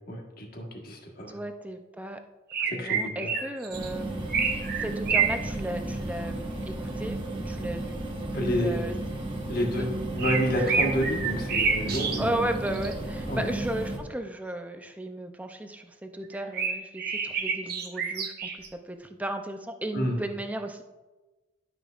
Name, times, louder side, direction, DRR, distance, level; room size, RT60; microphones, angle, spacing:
voice 1, 0.1-1.4 2.7-3.3 8.3-8.8 9.5-12.5 13.3-13.5 19.9-20.2, equal, 50° left, 0 dB, 1.5 m, -29 dB
voice 2, 1.3-2.2 2.6-8.0 8.4-8.9 9.6-9.9 12.2-20.8, right 1 dB, 10° right, 6 dB, 0.5 m, -35 dB
sound 1, 2.5-3.9 4.3-5.4 10.2-12.2 12.7-12.9 16.3-18.7, right 6 dB, 50° right, 1.0 m, -28 dB
sound 2, 3.7-14.0, right 1 dB, 25° right, 1.1 m, -34 dB
12.0 x 6.1 x 2.5 m, 1.1 s
head